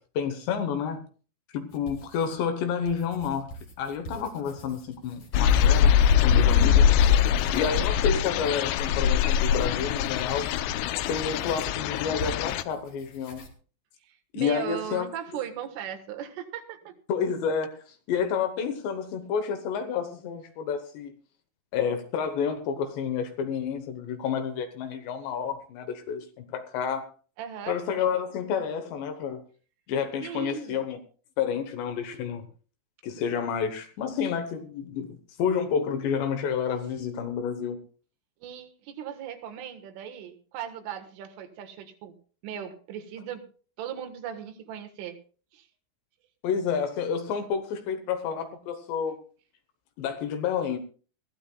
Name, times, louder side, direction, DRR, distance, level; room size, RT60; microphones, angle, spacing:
voice 1, 0.2-1.1 1.5-5.9 6.2-6.9 7.5-10.5 11.1-13.5 14.3-15.1 17.1-21.1 21.7-27.1 27.7-29.4 29.9-31.0 31.4-32.5 33.0-37.8 46.4-49.2 50.0-50.8, left 7 dB, 70° left, 8 dB, 3.0 m, -30 dB
sound 1, 1.7-2.5 2.9-13.5, right 2 dB, 45° left, 2.3 m, -46 dB
sound 2, 5.3-12.6, left 8 dB, 90° left, 2.4 m, -22 dB
voice 2, 6.5-6.9 14.1-17.0 27.4-27.8 30.2-30.8 38.4-42.2 42.4-43.4 43.8-45.2 45.5-45.7, right 9 dB, 80° right, 6 dB, 3.9 m, -38 dB
21.5 x 15.0 x 2.3 m, 0.39 s
omnidirectional pair, 5.8 m